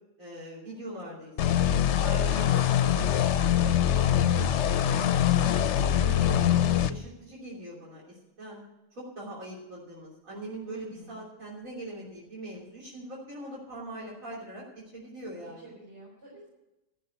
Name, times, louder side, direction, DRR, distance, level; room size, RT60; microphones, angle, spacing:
voice 1, 0.2-4.6 5.2-6.3 6.8-8.6 8.9-14.6 14.9-15.6, right 1 dB, 75° right, -5 dB, 3.6 m, -42 dB
sound 1, 1.4-6.9, left 10 dB, 65° left, 0.8 m, -23 dB
voice 2, 3.9-4.4 5.1-5.5 10.6-11.2 15.3-16.5, right 2 dB, 55° right, -6 dB, 4.7 m, -50 dB
13.5 x 6.6 x 9.4 m, 0.96 s
omnidirectional pair, 1.4 m